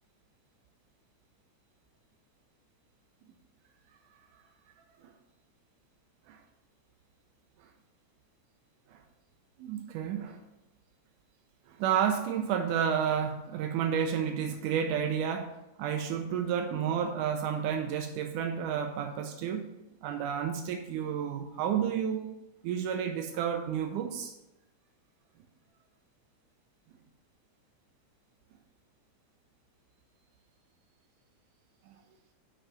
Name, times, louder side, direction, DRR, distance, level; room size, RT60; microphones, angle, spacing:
voice 1, 9.6-10.4 11.7-19.7 20.0-22.3 22.6-24.3 31.9-32.0, right 8 dB, 85° right, 2.2 m, -31 dB
6.2 x 5.6 x 6.9 m
omnidirectional pair, 3.5 m